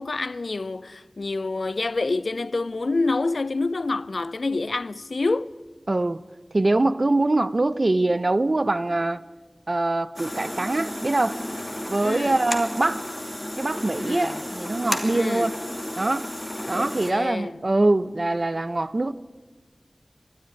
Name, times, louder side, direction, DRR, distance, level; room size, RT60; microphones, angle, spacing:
voice 1, 0.0-5.5 12.0-12.4 14.0-14.4 15.1-15.6 16.7-17.5, left 3 dB, 85° left, 0.5 m, -27 dB
voice 2, 5.9-6.2 6.5-9.2 9.7-11.4 11.9-13.0 13.6-15.5 16.0-16.3 16.7-19.1, right 2 dB, 55° right, 0.7 m, -23 dB
sound 1, 10.2-17.1, left 1 dB, 15° left, 2.5 m, -33 dB
20.0 x 13.0 x 9.9 m
wide cardioid pair, 55°, 0 cm